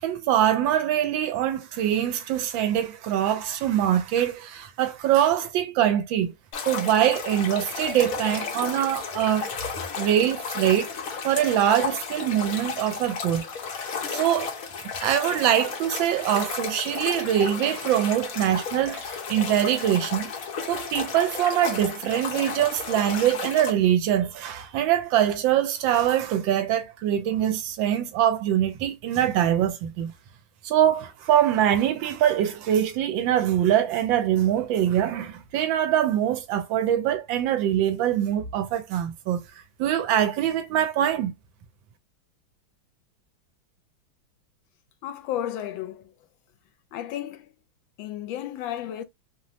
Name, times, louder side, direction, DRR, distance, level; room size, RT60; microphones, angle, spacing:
voice 1, 0.0-6.3 6.6-9.5 10.0-10.9 11.2-13.5 14.1-14.5 15.0-20.3 20.7-30.1 30.6-39.4 39.8-41.3, right 11 dB, 80° right, 1.3 m, -23 dB
sound 1, 6.5-23.7, left 6 dB, 60° left, 1.0 m, -33 dB
voice 2, 45.0-46.1 46.9-47.5 48.0-49.0, left 11 dB, 80° left, 1.3 m, -33 dB
3.2 x 2.0 x 2.6 m
omnidirectional pair, 2.1 m